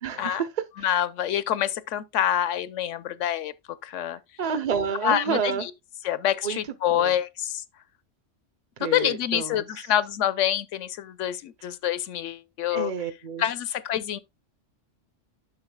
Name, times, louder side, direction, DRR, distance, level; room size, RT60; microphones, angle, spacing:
voice 1, 0.0-0.5 4.4-5.7 6.4-6.6 7.0-7.2 8.8-9.6 12.7-13.5, right 6 dB, 45° right, 0.6 m, -29 dB
voice 2, 0.8-3.5 3.8-4.2 5.0-5.7 6.0-7.6 8.8-12.9 13.4-14.2, left 11 dB, 85° left, 1.0 m, -26 dB
10.5 x 6.5 x 2.2 m
omnidirectional pair, 1.2 m